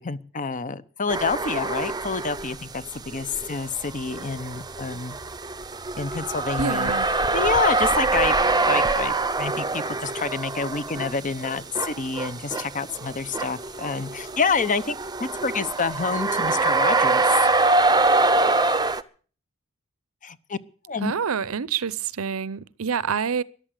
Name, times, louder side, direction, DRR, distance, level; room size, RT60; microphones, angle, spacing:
voice 1, 0.0-5.2 6.0-8.4 8.7-17.5 20.2-20.6 20.9-21.1, left 5 dB, 35° left, 0.9 m, -28 dB
sound 1, 1.1-2.6 2.9-19.0, right 3 dB, 20° right, 0.7 m, -24 dB
voice 2, 6.6-7.1 21.0-23.4, right 6 dB, 75° right, 0.7 m, -27 dB
14.0 x 11.5 x 8.2 m
head